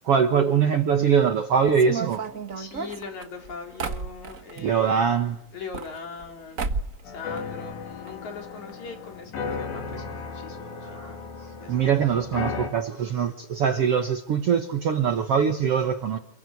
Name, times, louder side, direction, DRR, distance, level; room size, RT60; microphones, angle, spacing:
voice 1, 0.1-2.2 4.6-5.4 10.8-11.1 11.7-16.2, right 7 dB, 55° right, 1.7 m, -22 dB
sound 1, 1.7-4.7 5.5-6.3 6.6-7.0 7.3-8.1 8.4-8.5 8.7-8.8 9.5-9.6 9.9-10.1, right 4 dB, 80° right, 0.7 m, -33 dB
voice 2, 2.5-5.2 5.5-6.7 7.0-11.2 11.6-11.8 13.7-13.8, left 4 dB, 55° left, 5.1 m, -40 dB
sound 2, 7.1-12.7, left 5 dB, 85° left, 5.4 m, -35 dB
28.5 x 22.5 x 9.4 m
omnidirectional pair, 4.0 m